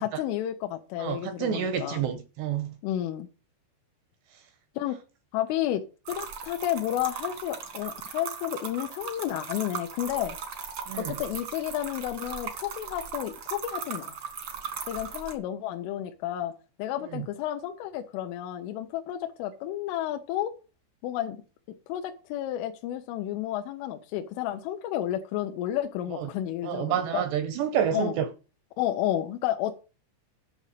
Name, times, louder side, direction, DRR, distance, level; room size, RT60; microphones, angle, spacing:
voice 1, 0.0-2.0 2.8-3.3 4.8-5.0 5.3-5.8 6.1-10.4 10.9-14.2 14.9-16.5 16.8-20.5 21.0-21.4 21.9-27.2 27.9-28.2 28.8-29.8, left 12 dB, 80° left, 3.3 m, -31 dB
voice 2, 1.0-2.7 10.9-11.2 17.1-17.3 26.2-26.3 26.6-28.3, right 9 dB, 80° right, 2.6 m, -29 dB
sound 1, 6.0-15.3, right 6 dB, 65° right, 1.3 m, -38 dB
9.9 x 6.2 x 6.6 m
omnidirectional pair, 5.6 m